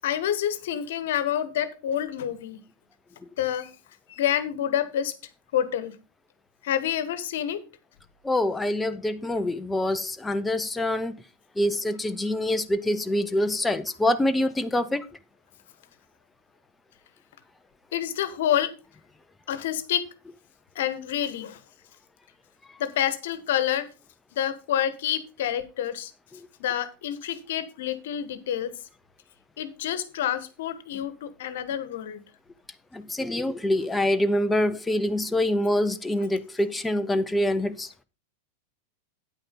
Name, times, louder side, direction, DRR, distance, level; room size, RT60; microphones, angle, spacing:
voice 1, 0.0-2.6 3.4-3.7 4.1-5.1 5.5-5.9 6.6-7.6 17.9-18.7 19.5-20.1 20.7-21.6 22.8-23.9 24.3-26.1 26.6-28.7 29.6-32.2, left 10 dB, 55° left, 1.2 m, -28 dB
voice 2, 8.2-11.1 11.6-15.0 32.9-37.9, left 1 dB, 10° left, 0.5 m, -25 dB
9.3 x 8.8 x 3.7 m
figure-of-eight pair, 90°, 0 cm